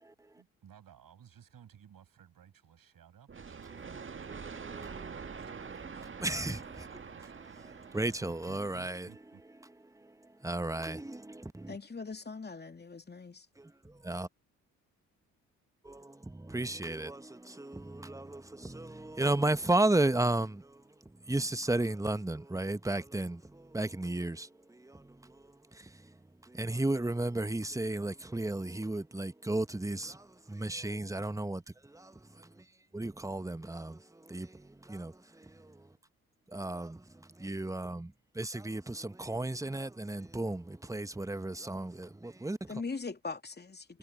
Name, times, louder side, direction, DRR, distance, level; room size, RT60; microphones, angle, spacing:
voice 1, 0.4-4.3 4.6-7.9 8.2-9.4, right 9 dB, 50° right, 7.9 m, -58 dB
sound 1, 3.3-9.0, right 5 dB, 25° right, 1.8 m, -45 dB
voice 2, 6.2-6.5 7.9-9.0 10.4-11.0 14.1-14.3 16.5-17.1 19.2-20.5 21.3-23.3 23.7-24.3 26.7-30.0 30.7-31.6 32.9-33.6 34.3-34.4 36.6-36.9 37.4-38.0 38.4-38.8 39.3-40.6 40.9-41.9 42.4-42.6, right 2 dB, 5° right, 1.6 m, -31 dB
voice 3, 11.7-13.5 42.7-43.8, left 4 dB, 20° left, 2.8 m, -40 dB
figure-of-eight pair, 40°, 45 cm